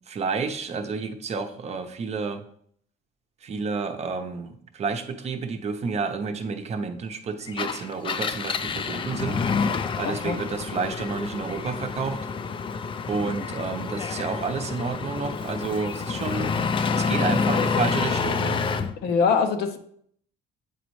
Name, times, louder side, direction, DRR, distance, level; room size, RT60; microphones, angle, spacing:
voice 1, 0.1-2.4 3.4-9.5 9.9-12.2 13.1-16.6 16.9-18.6, right 4 dB, 40° right, 6 dB, 0.7 m, -30 dB
Engine, 7.5-18.9, left 5 dB, 30° left, 0.4 m, -28 dB
voice 2, 10.0-10.4 19.0-19.8, left 5 dB, 75° left, 8 dB, 0.7 m, -23 dB
8.3 x 4.1 x 3.1 m, 0.66 s
cardioid pair, 110°, 17 cm